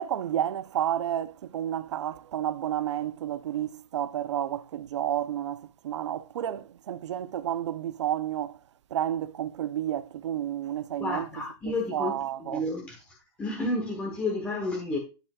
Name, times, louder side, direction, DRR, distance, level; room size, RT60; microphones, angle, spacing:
voice 1, 0.0-8.6 8.9-11.3 11.9-12.6, right 11 dB, 80° right, 0.7 m, -31 dB
voice 2, 11.0-13.0 13.4-15.0, left 2 dB, 10° left, 1.2 m, -31 dB
13.0 x 5.1 x 2.4 m
supercardioid pair, 170°, 15 cm